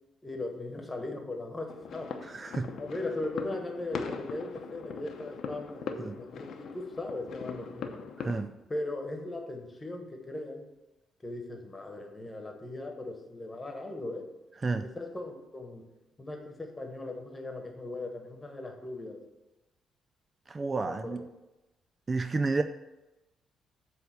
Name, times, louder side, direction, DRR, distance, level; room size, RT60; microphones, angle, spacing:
voice 1, 0.2-2.1 2.8-8.1 8.7-10.6 11.2-14.3 14.8-15.9 16.2-19.2 20.8-21.2, left 2 dB, 20° left, 1.4 m, -38 dB
sound 1, 1.7-8.4, left 5 dB, 70° left, 0.7 m, -40 dB
voice 2, 2.3-2.7 6.0-6.1 8.3-8.5 14.6-14.9 20.5-21.2 22.1-22.6, right 3 dB, 30° right, 0.3 m, -30 dB
7.7 x 3.4 x 6.5 m
cardioid pair, 90°, 0 cm